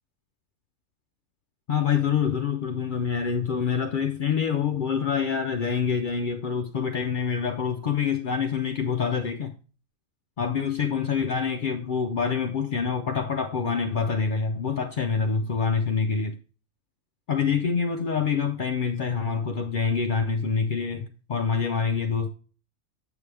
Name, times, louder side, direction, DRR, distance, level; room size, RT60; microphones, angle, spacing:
voice 1, 1.7-9.5 10.4-16.4 17.3-22.3, left 6 dB, 85° left, 0.4 m, -26 dB
7.0 x 6.5 x 3.3 m
omnidirectional pair, 1.5 m